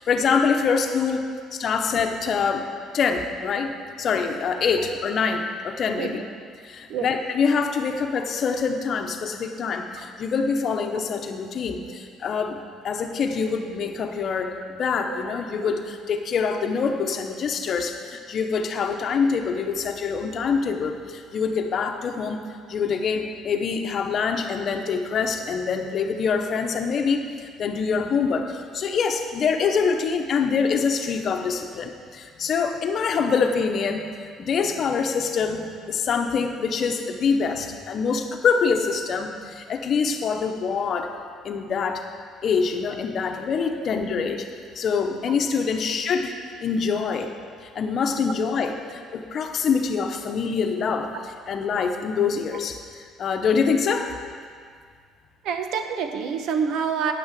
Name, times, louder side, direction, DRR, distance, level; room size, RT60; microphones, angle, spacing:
voice 1, 0.0-2.7 2.9-6.2 6.6-22.4 22.7-41.1 41.4-42.1 42.4-44.5 44.7-46.3 46.6-47.3 47.6-54.1, left 5 dB, 50° left, 5 dB, 0.9 m, -25 dB
voice 2, 55.4-57.1, right 6 dB, 75° right, 6 dB, 0.9 m, -27 dB
9.5 x 6.2 x 7.6 m, 2.1 s
cardioid pair, 115°, 0 cm